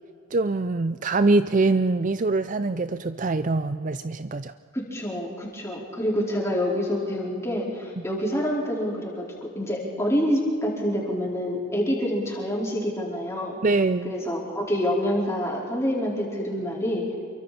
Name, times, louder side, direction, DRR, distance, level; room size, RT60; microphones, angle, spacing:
voice 1, 0.3-4.5 13.6-14.1, right 3 dB, 35° right, 12 dB, 0.5 m, -23 dB
voice 2, 4.7-13.6 14.0-17.1, equal, 15° left, -4 dB, 4.6 m, -27 dB
28.0 x 23.5 x 4.3 m, 2.3 s
head